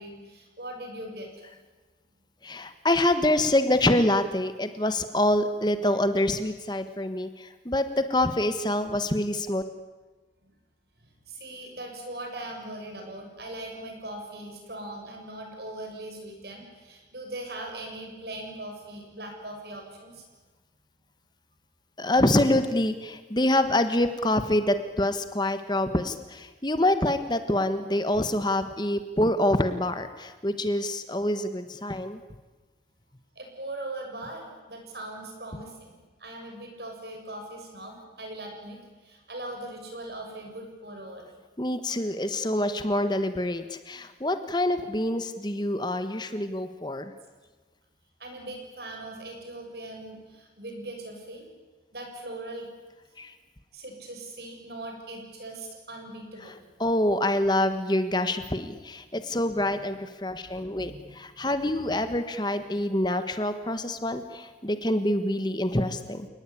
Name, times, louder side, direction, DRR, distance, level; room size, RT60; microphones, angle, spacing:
voice 1, 0.0-1.3 10.4-10.5 11.0-20.2 33.4-35.9 36.2-38.8 39.0-41.3 48.2-51.5 51.9-52.7 53.7-56.6 60.5-61.5, right 1 dB, 65° right, 3 dB, 7.3 m, -40 dB
voice 2, 2.4-9.6 22.0-32.2 41.6-47.1 53.2-53.3 56.8-66.3, left 1 dB, 25° left, 9 dB, 1.3 m, -26 dB
29.5 x 19.0 x 9.9 m, 1.3 s
head